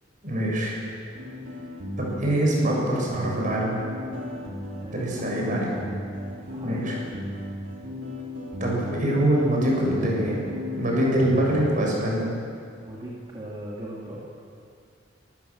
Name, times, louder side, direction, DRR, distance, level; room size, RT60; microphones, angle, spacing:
voice 1, 0.2-0.7 2.0-3.8 4.9-5.7 6.6-7.0 8.6-10.4 10.8-12.3, right 1 dB, 45° right, -3 dB, 6.9 m, -24 dB
sound 1, 1.2-11.8, left 1 dB, 80° right, 3.3 m, -35 dB
voice 2, 4.8-5.7 6.4-7.0 12.8-14.2, right 1 dB, 25° right, -6 dB, 2.7 m, -39 dB
24.5 x 14.5 x 7.2 m, 2.4 s
head